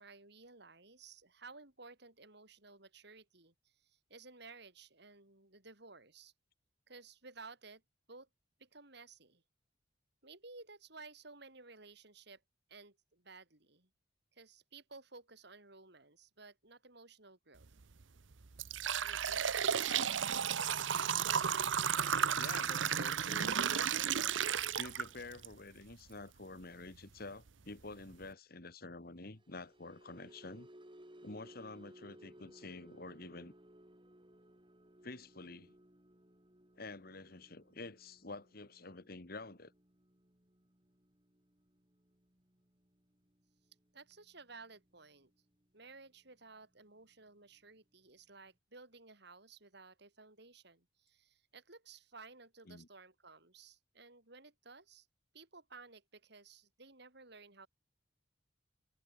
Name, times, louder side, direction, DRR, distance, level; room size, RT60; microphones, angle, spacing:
voice 1, 0.0-6.3 6.9-7.8 8.1-8.3 8.6-9.4 10.2-12.4 12.7-13.9 14.3-17.7 19.0-19.5 43.9-45.3 45.7-55.1 55.3-57.7, right 3 dB, 60° right, 5.3 m, -56 dB
sound 1, 17.6-17.8 18.3-25.5 25.9-26.0 26.9-27.0 27.5-27.6 28.0-28.2, right 8 dB, 80° right, 0.8 m, -33 dB
voice 2, 22.3-23.6 24.8-30.7 31.2-33.5 35.0-35.7 36.8-39.7 52.7-52.9, left 3 dB, 50° left, 2.0 m, -48 dB
sound 2, 29.2-45.6 46.0-46.3 46.6-46.8, right 1 dB, 25° right, 4.0 m, -62 dB
head